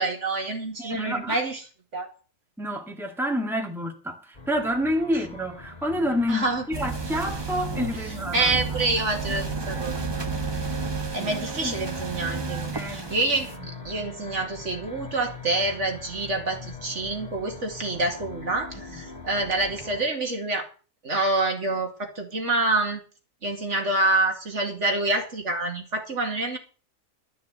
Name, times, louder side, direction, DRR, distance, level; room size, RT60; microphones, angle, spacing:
voice 1, 0.0-1.6 1.9-2.1 6.3-6.6 8.3-10.0 11.1-20.7 21.0-23.0 23.4-26.6, right 2 dB, 60° right, 2.6 m, -27 dB
voice 2, 0.8-1.4 2.6-8.8 9.7-10.3 10.7-10.8 11.2-11.8 12.7-13.1 18.9-19.0, equal, ahead, 1.9 m, -29 dB
sound 1, 4.3-20.1, left 2 dB, 30° left, 2.7 m, -42 dB
sound 2, 6.7-13.6, right 4 dB, 20° right, 1.1 m, -32 dB
12.5 x 6.6 x 8.0 m
omnidirectional pair, 1.4 m